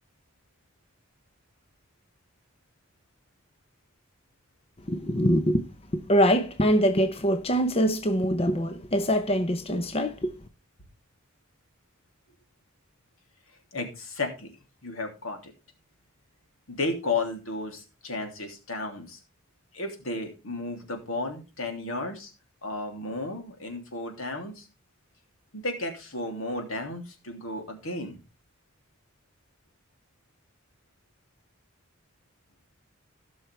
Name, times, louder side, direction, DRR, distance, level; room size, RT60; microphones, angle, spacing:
voice 1, 4.9-5.6 5.9-10.3, equal, 30° left, 0.9 m, -24 dB
voice 2, 13.7-14.5 14.8-15.5 16.7-19.2 19.7-22.3 22.6-24.7 25.5-28.2, left 2 dB, 90° left, 3.0 m, -33 dB
17.0 x 6.3 x 3.4 m
head